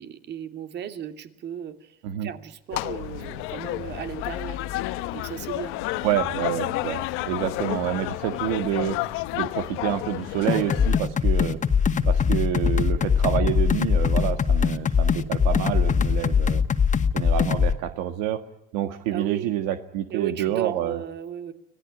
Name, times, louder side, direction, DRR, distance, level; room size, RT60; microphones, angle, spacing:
voice 1, 0.0-4.6 5.1-5.7 19.1-19.5 20.1-21.5, right 9 dB, 55° right, 8 dB, 2.7 m, -35 dB
sound 1, 2.7-11.0, left 17 dB, 75° left, 1.2 m, -31 dB
voice 2, 6.0-9.0 9.3-11.6 12.0-16.6 17.1-18.4 18.7-21.0, right 11 dB, 85° right, 8 dB, 1.7 m, -28 dB
sound 2, 10.5-17.7, left 6 dB, 35° left, 1.9 m, -21 dB
25.5 x 18.5 x 10.0 m, 0.89 s
supercardioid pair, 90°, 21 cm